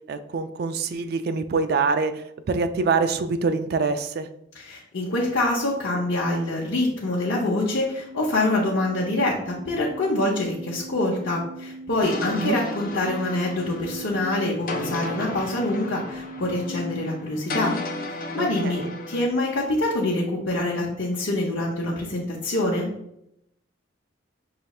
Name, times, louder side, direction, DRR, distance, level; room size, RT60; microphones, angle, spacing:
voice 1, 0.1-2.2 2.5-4.3 12.3-12.6 18.4-18.9, right 4 dB, 55° right, 9 dB, 0.3 m, -25 dB
voice 2, 4.5-17.7 18.1-18.8 19.1-22.9, left 2 dB, 80° left, -5 dB, 0.8 m, -25 dB
sound 1, 7.5-17.1, right 1 dB, ahead, 0.5 m, -40 dB
sound 2, 12.0-19.3, left 2 dB, 45° left, 0.5 m, -34 dB
5.7 x 3.1 x 2.3 m, 0.78 s
head